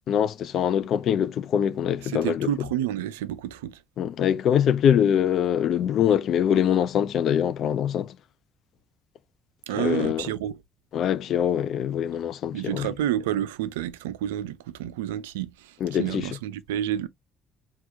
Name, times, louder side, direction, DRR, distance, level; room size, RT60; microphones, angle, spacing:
voice 1, 0.1-2.5 4.0-8.1 9.8-10.2 10.9-12.9 15.8-16.3, left 9 dB, 60° left, 0.5 m, -23 dB
voice 2, 2.0-3.8 9.7-10.6 12.5-17.1, right 11 dB, 80° right, 0.3 m, -30 dB
4.6 x 2.4 x 2.7 m
hypercardioid pair, 50°, 0 cm